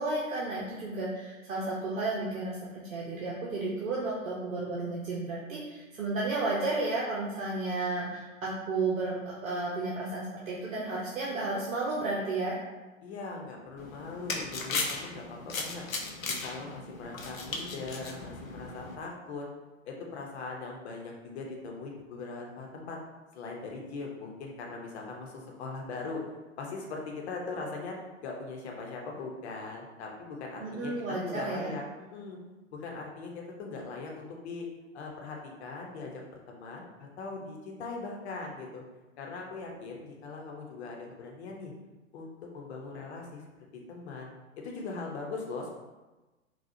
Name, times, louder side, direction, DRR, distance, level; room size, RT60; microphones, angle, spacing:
voice 1, 0.0-2.6 2.9-12.6 30.6-31.7, right 2 dB, 75° right, -5 dB, 0.8 m, -32 dB
voice 2, 13.0-15.8 16.2-19.5 19.8-23.0 23.3-26.2 26.6-31.8 32.1-32.4 32.7-34.7 34.9-36.2 36.5-38.8 39.2-41.7 42.1-43.4 43.9-45.7, left 3 dB, 50° left, 0 dB, 0.9 m, -40 dB
sound 1, 13.8-19.0, left 3 dB, 80° left, 0.7 m, -37 dB
4.2 x 2.3 x 2.7 m, 1.1 s
figure-of-eight pair, 105°, 41 cm